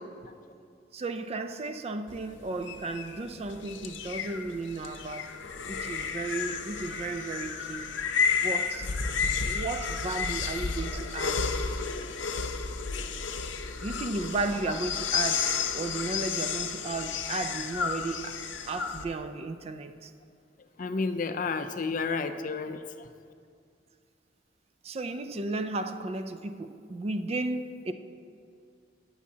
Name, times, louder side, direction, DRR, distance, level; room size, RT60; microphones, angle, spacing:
voice 1, 0.9-5.4 5.7-7.9 8.4-8.9 9.4-11.6 13.8-18.4 18.7-20.1 24.8-27.9, right 3 dB, 35° right, 0.4 m, -34 dB
sound 1, 2.1-19.0, left 5 dB, 90° left, 0.7 m, -32 dB
voice 2, 20.8-22.8, left 4 dB, 45° left, 0.5 m, -31 dB
18.0 x 7.1 x 2.8 m
head